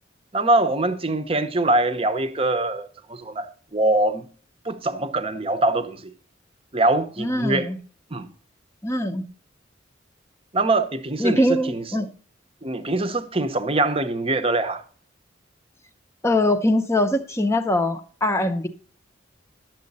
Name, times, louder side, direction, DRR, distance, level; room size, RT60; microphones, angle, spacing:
voice 1, 0.3-4.2 4.6-6.1 6.7-7.7 8.1-8.3 10.5-11.8 12.6-14.8, right 2 dB, 30° right, 0.8 m, -23 dB
voice 2, 7.2-7.8 8.8-9.2 11.2-12.1 16.2-18.7, left 1 dB, 15° left, 0.7 m, -22 dB
12.0 x 7.5 x 4.1 m
head